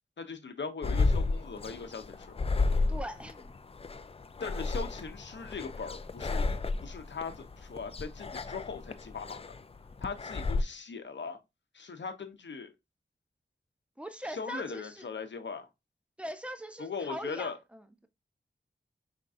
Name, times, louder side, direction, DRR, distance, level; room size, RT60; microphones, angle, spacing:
voice 1, 0.2-2.3 4.4-9.4 10.0-11.4 11.7-12.7 14.3-15.7 16.8-17.6, left 5 dB, 75° left, 0.8 m, -39 dB
sound 1, 0.8-10.6, left 3 dB, 30° left, 0.4 m, -32 dB
voice 2, 2.9-3.5 14.0-15.1 16.2-18.1, equal, 5° right, 0.7 m, -41 dB
5.1 x 3.6 x 2.5 m
wide cardioid pair, 85°, 19 cm